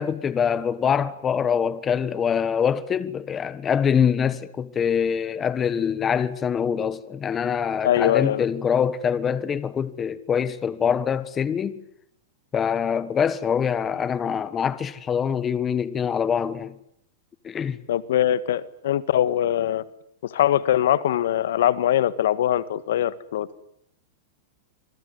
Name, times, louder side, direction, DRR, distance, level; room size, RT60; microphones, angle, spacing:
voice 1, 0.0-11.8 12.5-16.7 17.4-17.8, left 7 dB, 15° left, 1.4 m, -24 dB
voice 2, 7.8-8.4 17.9-19.8 20.2-23.5, left 11 dB, 75° left, 1.7 m, -22 dB
27.0 x 23.0 x 9.5 m
supercardioid pair, 160°, 0 cm